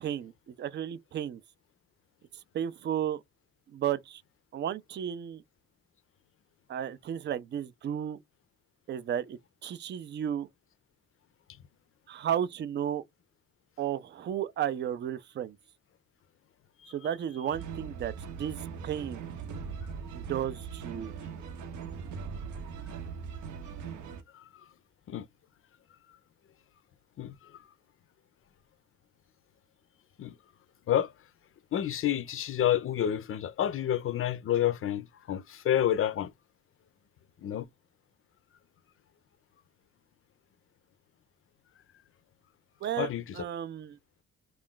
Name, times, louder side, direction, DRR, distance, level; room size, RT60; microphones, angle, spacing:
voice 1, 0.0-1.4 2.5-3.2 3.7-4.2 4.5-5.4 6.7-8.2 8.9-10.5 12.1-13.0 13.8-15.6 16.9-18.1 18.4-19.2 20.1-21.1 42.8-43.1 43.3-44.0, right 10 dB, 40° right, 0.4 m, -33 dB
sound 1, 17.5-24.2, right 6 dB, 70° right, 0.7 m, -40 dB
voice 2, 27.2-27.6 30.2-30.3 30.9-31.1 31.7-36.3 37.4-37.7 43.0-43.4, left 11 dB, 45° left, 0.5 m, -29 dB
2.4 x 2.2 x 3.7 m
cardioid pair, 90°, 30 cm